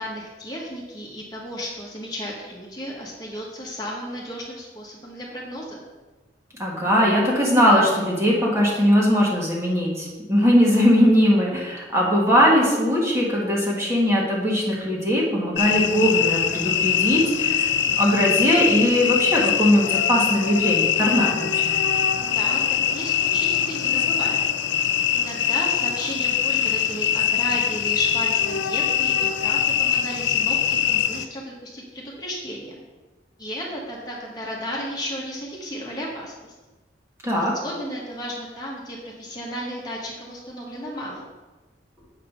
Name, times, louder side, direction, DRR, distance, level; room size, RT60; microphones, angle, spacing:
voice 1, 0.0-5.8 22.1-24.4 25.1-32.8 33.4-36.5 37.3-41.2, equal, 20° left, -4 dB, 1.5 m, -34 dB
voice 2, 6.6-21.8 37.2-37.6, equal, 15° right, -4 dB, 1.7 m, -20 dB
sound 1, 15.6-31.3, left 9 dB, 75° left, 0.5 m, -23 dB
8.2 x 5.0 x 5.9 m, 1.2 s
head